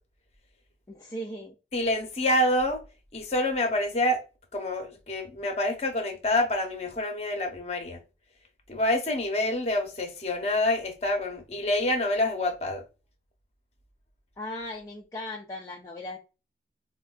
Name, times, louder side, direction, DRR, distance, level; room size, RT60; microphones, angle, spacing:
voice 1, 0.9-1.6 14.4-16.2, left 1 dB, 20° left, 0.3 m, -37 dB
voice 2, 1.7-2.8 3.1-4.2 4.5-8.0 8.7-12.8, left 1 dB, 35° left, 0.7 m, -27 dB
4.3 x 2.2 x 2.3 m
head